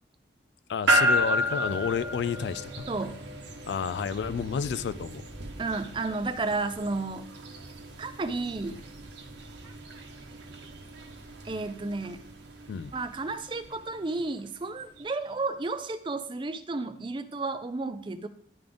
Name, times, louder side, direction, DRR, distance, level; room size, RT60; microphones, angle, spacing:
voice 1, 0.7-2.9 3.7-5.3 12.7-12.9, left 6 dB, 70° left, 15 dB, 0.3 m, -30 dB
sound 1, 0.9-15.1, equal, 80° right, 1.0 m, -33 dB
voice 2, 2.9-3.2 5.6-7.3 8.0-8.9 11.4-12.2 12.9-18.3, right 3 dB, 25° right, 11 dB, 0.4 m, -32 dB
10.5 x 3.8 x 3.4 m, 0.62 s
head